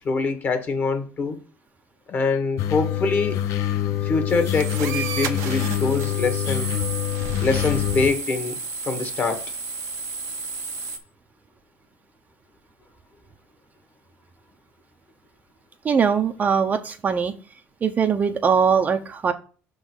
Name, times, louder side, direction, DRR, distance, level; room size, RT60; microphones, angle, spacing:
voice 1, 0.0-1.4 2.1-3.4 4.0-6.7 7.4-8.6 8.9-9.5, left 4 dB, 35° left, 1.4 m, -24 dB
sound 1, 2.6-8.1, left 11 dB, 70° left, 0.8 m, -25 dB
sound 2, 4.3-11.0, right 5 dB, 75° right, 1.0 m, -33 dB
voice 2, 15.8-17.3 17.8-19.3, right 6 dB, 30° right, 0.7 m, -21 dB
6.2 x 3.9 x 6.2 m
cardioid pair, 135°, 5 cm